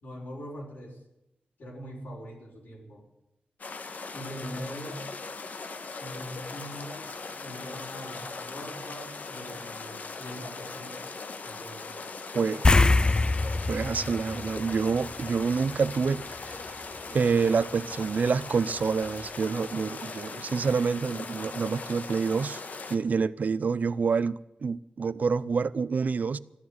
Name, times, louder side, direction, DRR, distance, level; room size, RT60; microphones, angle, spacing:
voice 1, 0.0-1.0 1.6-3.0 4.1-5.1 5.9-7.1 7.4-11.0 11.4-11.9, equal, 85° left, 4.8 m, -42 dB
sound 1, 3.6-23.0, left 4 dB, 65° left, 1.4 m, -40 dB
voice 2, 12.3-12.9 13.7-16.7 17.1-22.6 22.9-26.4, right 5 dB, 65° right, 0.5 m, -27 dB
sound 2, 12.6-15.4 15.7-15.9 18.8-18.9 19.2-19.3, left 3 dB, 30° left, 0.5 m, -24 dB
14.0 x 11.0 x 9.5 m
wide cardioid pair, 75°, 3 cm